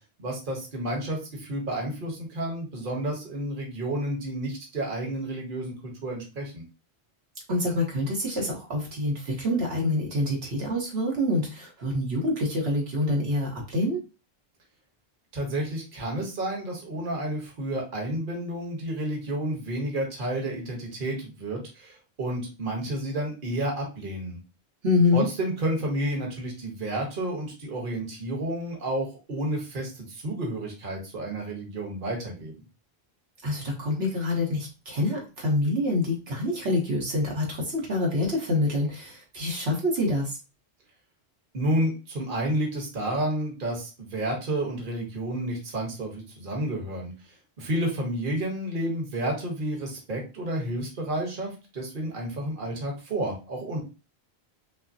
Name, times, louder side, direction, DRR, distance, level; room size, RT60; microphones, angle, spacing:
voice 1, 0.2-5.7 6.0-6.6 15.3-24.4 25.1-32.5 41.5-47.1 47.6-53.8, right 1 dB, 50° right, 0 dB, 1.3 m, -30 dB
voice 2, 7.5-14.0 24.8-25.3 33.4-40.4, left 2 dB, 70° right, -2 dB, 1.3 m, -26 dB
5.7 x 2.0 x 2.6 m, 0.31 s
omnidirectional pair, 1.1 m